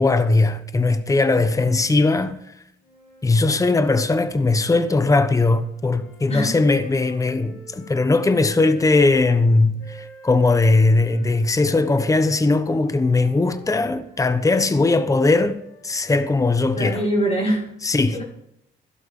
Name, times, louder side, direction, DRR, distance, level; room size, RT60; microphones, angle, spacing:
voice 1, 0.0-2.3 3.2-17.0 17.8-18.2, left 3 dB, 15° left, 0.9 m, -19 dB
voice 2, 1.4-1.7 6.3-6.6 16.8-17.7 18.1-18.2, right 1 dB, 35° left, 5.9 m, -24 dB
sound 1, 2.8-9.1 9.8-16.9, equal, 90° left, 4.3 m, -48 dB
15.5 x 12.0 x 3.7 m
cardioid pair, 90°, 20 cm